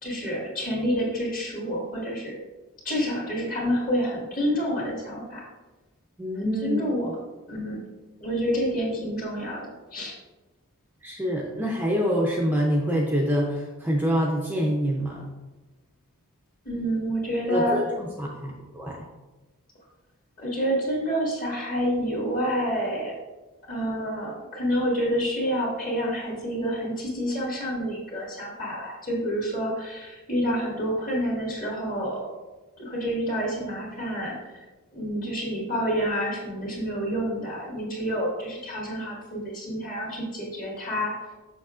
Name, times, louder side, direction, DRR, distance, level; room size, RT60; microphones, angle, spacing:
voice 1, 0.0-2.4 2.8-5.5 6.3-7.1 7.5-7.8 8.2-10.1 16.6-17.8 20.4-23.2 23.7-32.3 32.8-34.5 34.9-41.2, equal, 40° left, -4 dB, 1.9 m, -28 dB
voice 2, 6.2-6.8 11.0-15.2 17.5-19.0, equal, 10° right, -2 dB, 0.5 m, -26 dB
6.8 x 6.0 x 2.5 m, 1.2 s
head